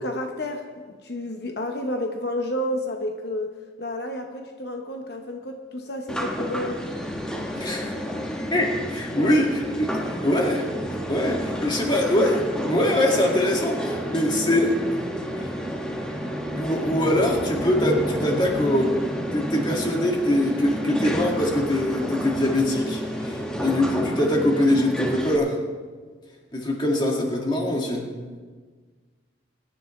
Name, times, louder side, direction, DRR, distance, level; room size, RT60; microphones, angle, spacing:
voice 1, 0.0-6.8 9.1-9.4, left 1 dB, 60° left, 3 dB, 0.9 m, -31 dB
sound 1, 6.1-25.4, equal, 5° left, 1.2 m, -30 dB
voice 2, 7.6-7.9 8.5-10.7 11.1-14.8 16.6-18.9 19.3-25.6 26.5-28.1, left 1 dB, 25° left, 0 dB, 2.0 m, -23 dB
23.0 x 10.5 x 3.2 m, 1.5 s
head